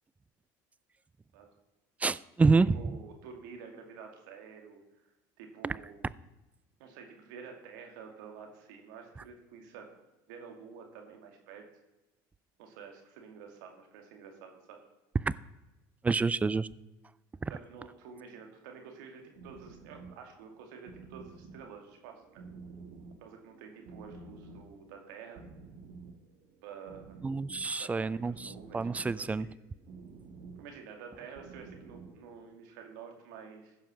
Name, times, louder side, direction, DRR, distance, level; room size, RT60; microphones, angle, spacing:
voice 1, 2.0-2.8 5.6-5.7 15.3-15.4 16.0-16.7 17.4-17.5 27.2-29.5, right 4 dB, 15° right, 0.4 m, -27 dB
voice 2, 2.7-4.8 5.4-6.1 6.8-9.9 10.3-11.7 12.6-14.8 17.5-22.4 23.2-25.4 26.6-27.2 27.6-29.5 30.6-33.8, right 6 dB, 85° right, 2.3 m, -49 dB
sound 1, 19.2-32.4, right 4 dB, 70° right, 1.4 m, -52 dB
15.0 x 5.7 x 6.3 m
supercardioid pair, 100°, 10 cm